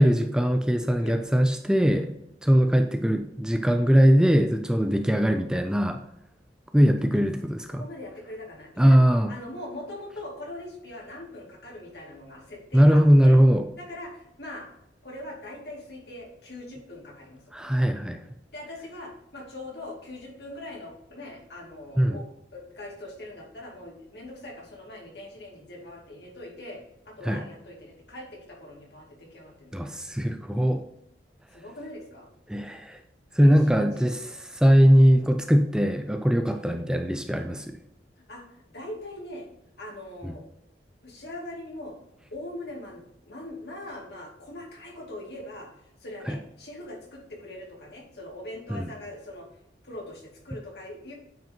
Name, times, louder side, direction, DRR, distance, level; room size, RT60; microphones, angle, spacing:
voice 1, 0.0-2.2 2.4-6.0 6.7-7.8 8.8-9.3 12.7-13.7 17.5-18.2 22.0-22.2 27.2-27.4 29.7-30.8 32.5-33.0 33.3-34.2 34.5-37.8 40.2-40.3 46.3-46.4 48.7-48.9, equal, 5° right, 6 dB, 0.4 m, -20 dB
voice 2, 1.0-1.3 2.5-2.7 7.0-7.2 7.7-9.0 9.3-13.4 13.8-14.7 15.0-17.7 18.5-22.2 22.5-29.7 31.5-32.3 33.4-34.4 35.4-35.7 36.5-36.7 38.2-38.4 38.7-39.5 39.8-40.4 41.0-42.0 42.3-49.5 49.8-51.1, left 1 dB, 65° left, -2 dB, 2.5 m, -41 dB
9.0 x 5.2 x 2.9 m, 0.80 s
head